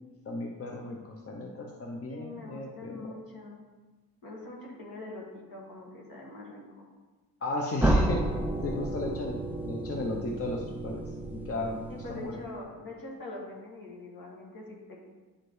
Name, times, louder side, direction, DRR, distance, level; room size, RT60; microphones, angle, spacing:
voice 1, 0.3-3.1 7.4-8.2 8.6-9.4 9.7-11.0 11.3-11.8 12.1-12.3, left 2 dB, 40° left, 0 dB, 0.7 m, -35 dB
voice 2, 2.1-3.6 4.2-6.9 11.9-15.0, left 2 dB, 70° left, -3 dB, 2.0 m, -43 dB
sound 1, 7.8-12.6, right 1 dB, 5° right, 0.4 m, -31 dB
9.8 x 5.0 x 3.1 m, 1.2 s
wide cardioid pair, 155°, 36 cm